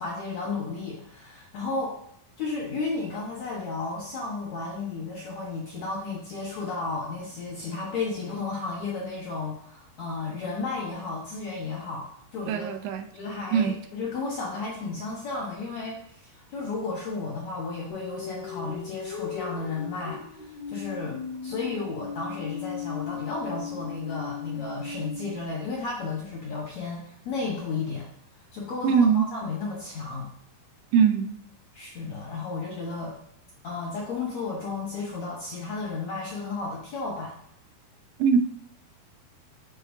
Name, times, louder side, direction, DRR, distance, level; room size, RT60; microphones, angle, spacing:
voice 1, 0.0-2.0 2.4-12.7 13.1-28.1 28.5-30.3 31.7-33.2 33.6-37.4, left 3 dB, 65° left, -3 dB, 1.8 m, -33 dB
voice 2, 12.5-13.0 13.5-13.7 28.8-29.3 30.9-31.4 38.2-38.4, right 6 dB, 85° right, 7 dB, 2.7 m, -21 dB
sound 1, 17.9-25.5, left 6 dB, 85° left, 4.4 m, -37 dB
12.0 x 4.2 x 2.7 m, 0.66 s
omnidirectional pair, 4.6 m